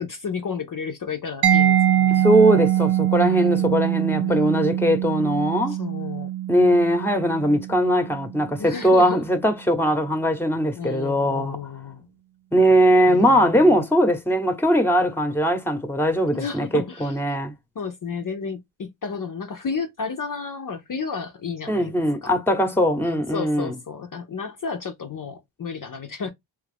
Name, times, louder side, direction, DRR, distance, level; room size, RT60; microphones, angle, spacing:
voice 1, 0.0-2.3 3.2-3.9 4.2-4.3 5.7-6.3 8.6-9.2 10.7-12.1 13.1-13.9 16.3-17.2 17.8-22.3 22.7-26.3, left 5 dB, 45° left, 0.6 m, -32 dB
Mallet percussion, 1.4-9.0, right 11 dB, 60° right, 0.6 m, -23 dB
voice 2, 2.1-5.7 6.5-11.6 12.5-17.5 21.7-23.8, equal, 5° left, 0.9 m, -20 dB
3.1 x 2.3 x 3.3 m
cardioid pair, 50°, 46 cm